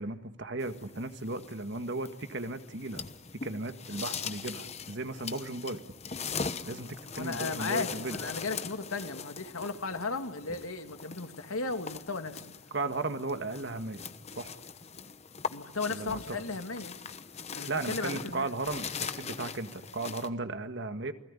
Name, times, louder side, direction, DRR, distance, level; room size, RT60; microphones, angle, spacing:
voice 1, 0.0-3.0 3.3-5.8 6.7-8.2 12.7-14.0 14.4-14.5 15.9-16.4 17.7-21.1, right 2 dB, 50° right, 8 dB, 1.8 m, -36 dB
sound 1, 0.6-20.3, left 5 dB, 30° left, 1.0 m, -41 dB
voice 2, 7.1-12.5 15.5-17.0 17.5-18.5, left 3 dB, 75° left, 7 dB, 2.3 m, -35 dB
29.0 x 20.5 x 10.0 m, 0.84 s
head